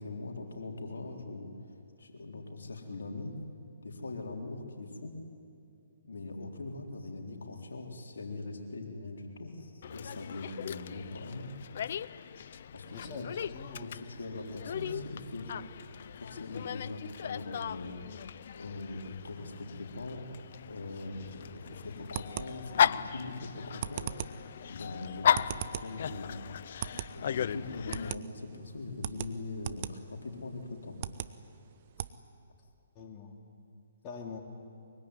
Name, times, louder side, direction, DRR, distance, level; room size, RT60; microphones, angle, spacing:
voice 1, 0.0-1.5 2.0-3.3 3.8-5.1 6.0-11.5 12.7-13.3 13.8-15.5 16.2-18.1 18.5-20.2 20.7-24.1 24.7-26.4 27.1-30.9, left 3 dB, 75° left, 1 dB, 3.9 m, -41 dB
Dog, 9.8-28.1, left 8 dB, 55° left, 0.6 m, -36 dB
voice 2, 12.9-14.0 32.9-33.3 34.0-34.4, left 4 dB, 30° left, 1 dB, 2.9 m, -44 dB
sound 1, 21.2-32.1, right 11 dB, 45° right, 1.0 m, -42 dB
23.5 x 23.0 x 9.9 m, 2.5 s
figure-of-eight pair, 135°, 0 cm